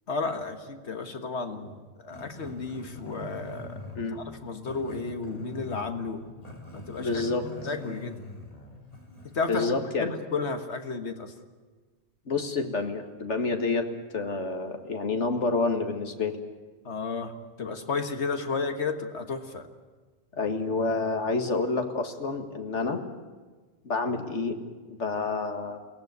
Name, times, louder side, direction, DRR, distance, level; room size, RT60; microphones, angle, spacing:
voice 1, 0.1-6.2 6.7-7.2 7.7-8.2 9.3-11.3 16.9-19.7, left 4 dB, 75° left, 7 dB, 1.8 m, -33 dB
Growling, 2.1-9.4, left 1 dB, 35° left, 3.5 m, -43 dB
voice 2, 7.0-7.5 9.5-10.1 12.3-13.9 14.1-16.4 20.4-23.0 23.9-24.6 24.9-25.8, left 3 dB, 90° left, 5 dB, 2.1 m, -28 dB
22.5 x 17.5 x 9.5 m, 1.4 s
omnidirectional pair, 1.2 m